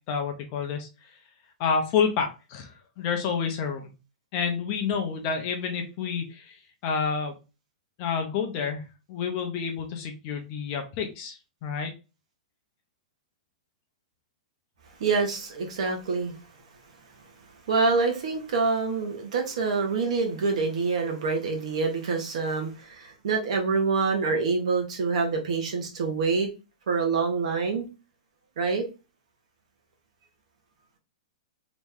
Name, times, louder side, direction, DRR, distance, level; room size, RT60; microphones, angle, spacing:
voice 1, 0.1-1.1 1.6-3.9 4.3-6.6 6.8-7.3 8.0-11.9, left 6 dB, 25° left, 0.5 m, -29 dB
voice 2, 15.0-16.4 17.7-26.5 26.9-27.9 28.6-28.8, right 4 dB, 55° right, 1.1 m, -26 dB
3.0 x 2.7 x 3.5 m
supercardioid pair, 180°, 4 cm